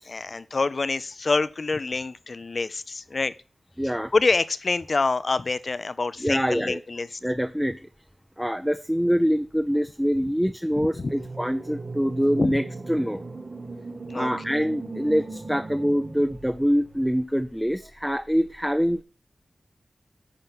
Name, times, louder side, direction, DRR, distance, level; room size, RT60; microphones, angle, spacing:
voice 1, 0.1-3.3 4.1-7.1 10.8-11.1 12.4-12.5 14.1-14.3, left 3 dB, 60° left, 16 dB, 0.5 m, -26 dB
voice 2, 3.8-4.1 6.2-6.8 7.2-7.8 8.4-13.2 14.1-19.0, equal, 5° right, 8 dB, 0.5 m, -25 dB
sound 1, 10.9-17.0, right 3 dB, 50° right, 1.1 m, -38 dB
11.0 x 4.5 x 5.4 m, 0.36 s
cardioid pair, 45°, 0 cm